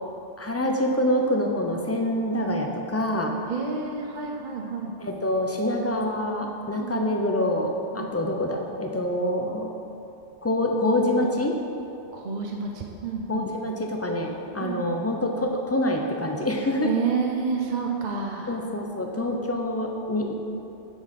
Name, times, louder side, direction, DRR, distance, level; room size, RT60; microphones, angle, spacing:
voice 1, 0.4-3.3 5.0-9.7 10.4-11.6 13.3-16.9 18.5-20.3, left 1 dB, 15° left, 2 dB, 0.6 m, -26 dB
voice 2, 3.5-4.9 6.8-7.0 7.9-8.1 12.1-13.5 14.6-14.9 16.8-18.6, right 5 dB, 45° right, 0 dB, 0.8 m, -30 dB
7.9 x 6.4 x 5.8 m, 2.8 s
omnidirectional pair, 1.2 m